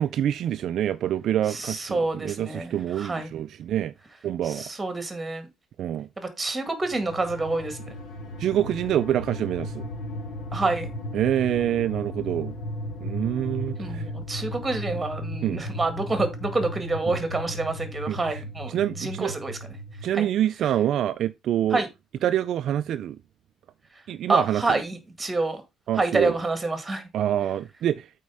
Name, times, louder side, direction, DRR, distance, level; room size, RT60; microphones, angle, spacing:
voice 1, 0.0-3.9 4.2-4.7 5.8-6.1 8.4-9.8 11.1-12.5 13.0-14.1 15.4-15.7 17.1-17.2 18.1-18.4 18.7-19.3 20.0-21.8 22.2-23.2 24.1-24.8 25.9-26.3 27.1-28.1, right 11 dB, 55° right, 0.4 m, -26 dB
voice 2, 1.5-3.3 4.4-5.5 6.2-7.9 10.5-10.9 13.8-19.6 20.1-20.3 21.7-21.9 24.3-25.6 26.0-27.0, right 3 dB, 15° right, 1.8 m, -27 dB
sound 1, 6.8-20.1, left 1 dB, 60° left, 1.9 m, -35 dB
8.4 x 4.4 x 4.8 m
cardioid pair, 155°, 0 cm